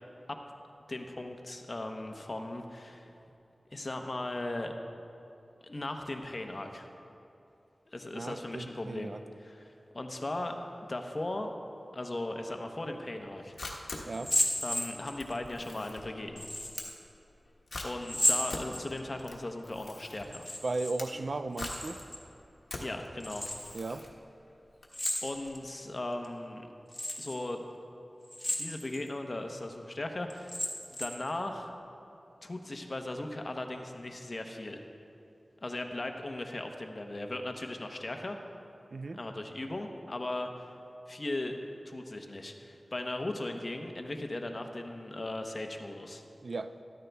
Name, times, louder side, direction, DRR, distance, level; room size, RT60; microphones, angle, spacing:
voice 1, 0.9-3.1 3.7-4.7 5.6-6.9 7.9-9.1 9.4-10.6 10.9-11.5 11.9-13.6 14.6-16.5 17.8-20.5 22.8-23.4 25.2-26.7 27.2-27.7 28.6-30.6 31.0-31.7 32.4-34.8 35.6-38.4 39.1-40.7 41.1-41.6 41.9-46.2, left 2 dB, 40° left, 4 dB, 0.9 m, -37 dB
voice 2, 8.1-9.2 14.1-14.3 20.6-22.0 23.7-24.0 38.9-39.2 46.4-46.7, right 3 dB, 65° right, 10 dB, 0.4 m, -36 dB
Camera, 13.2-25.6, left 2 dB, 80° left, 1.3 m, -45 dB
sound 1, 14.1-15.4 16.4-17.0 18.0-19.2 20.2-21.0 21.2-22.2 23.2-23.8 24.9-25.7 26.2-26.3 26.9-27.4 28.2-29.0 29.5-29.6 30.3-31.3, left 1 dB, 10° left, 1.4 m, -33 dB
13.0 x 12.5 x 3.5 m, 2.7 s
wide cardioid pair, 85°, 0 cm